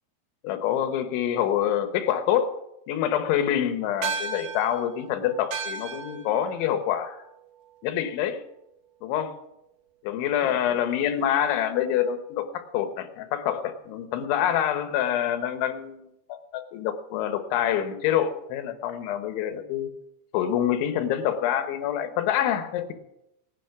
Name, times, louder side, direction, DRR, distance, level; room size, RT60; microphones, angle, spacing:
voice 1, 0.4-2.6 2.9-7.2 7.8-8.4 9.0-9.4 10.0-19.9 20.3-22.9, left 10 dB, 85° left, 8 dB, 3.5 m, -26 dB
sound 1, 4.0-8.7, right 5 dB, 90° right, 1.7 m, -37 dB
18.5 x 9.2 x 5.9 m, 0.84 s
omnidirectional pair, 5.3 m